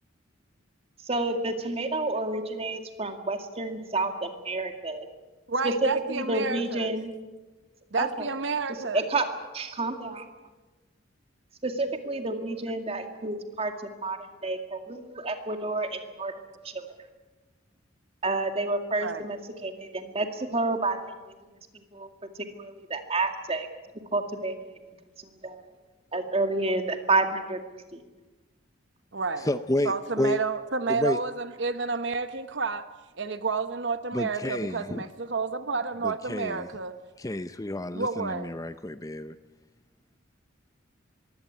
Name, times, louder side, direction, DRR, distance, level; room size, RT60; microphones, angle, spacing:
voice 1, 1.1-5.1 5.6-7.1 8.0-8.3 8.9-9.3 9.5-10.3 11.6-13.7 14.0-16.9 18.2-21.3 21.9-22.1 22.5-23.7 24.1-24.7 25.2-25.6 26.1-27.6 27.9-28.0, right 2 dB, 30° right, 6 dB, 2.1 m, -29 dB
voice 2, 5.5-6.9 7.9-9.1 19.0-19.2 29.1-29.5 29.8-32.9 33.2-36.9 37.9-38.5, right 4 dB, 60° right, 11 dB, 0.9 m, -30 dB
voice 3, 29.4-30.4 30.9-31.2 34.1-35.0 36.0-36.7 37.2-39.3, left 1 dB, 15° left, 12 dB, 0.6 m, -30 dB
22.5 x 16.5 x 9.4 m, 1.2 s
head